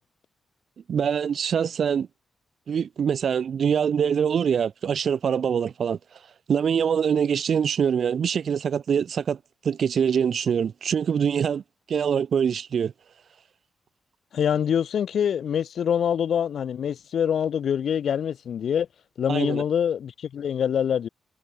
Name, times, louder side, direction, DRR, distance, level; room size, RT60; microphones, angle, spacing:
voice 1, 0.9-2.1 2.7-6.0 6.5-9.4 9.6-11.6 11.9-12.9 19.3-19.6, right 7 dB, 65° right, 1.8 m, -24 dB
voice 2, 14.3-18.9 19.2-21.1, left 8 dB, 75° left, 1.7 m, -25 dB
cardioid pair, 80°, 0 cm